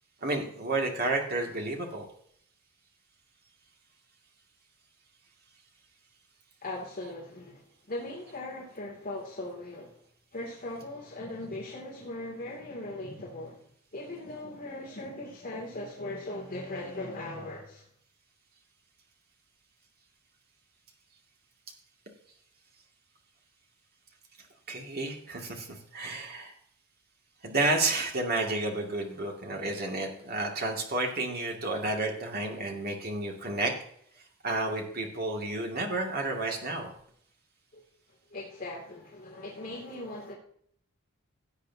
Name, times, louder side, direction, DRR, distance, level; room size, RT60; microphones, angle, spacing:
voice 1, 0.2-2.0 24.7-25.7 25.9-26.5 27.4-33.7 34.4-36.9, right 2 dB, 45° right, 1 dB, 2.3 m, -31 dB
voice 2, 6.6-10.0 10.3-13.6 13.9-17.8 37.7-37.8 38.3-40.3, left 2 dB, 40° left, -3 dB, 2.6 m, -39 dB
17.0 x 8.2 x 2.8 m, 0.66 s
head